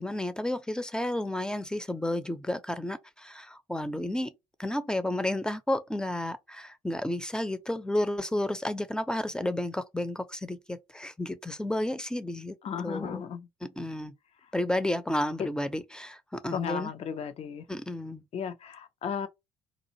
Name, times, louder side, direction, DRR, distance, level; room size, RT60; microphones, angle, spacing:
voice 1, 0.0-4.3 4.6-12.6 12.8-13.2 13.6-14.1 14.5-16.9 17.7-18.2, left 1 dB, 5° left, 0.7 m, -31 dB
voice 2, 12.6-13.5 16.5-17.6 18.3-19.3, left 7 dB, 45° left, 0.6 m, -35 dB
3.9 x 2.4 x 2.8 m
hypercardioid pair, 50°, 14 cm